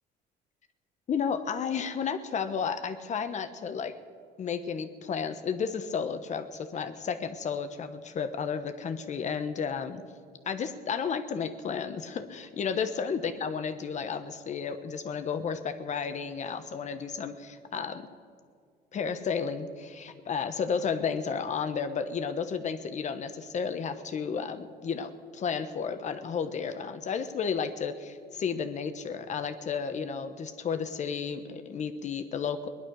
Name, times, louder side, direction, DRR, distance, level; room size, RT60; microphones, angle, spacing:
voice 1, 1.1-3.9 4.4-10.0 10.4-18.1 18.9-32.7, left 6 dB, 45° left, 9 dB, 1.1 m, -32 dB
19.5 x 11.5 x 6.3 m, 2.1 s
cardioid pair, 110°, 17 cm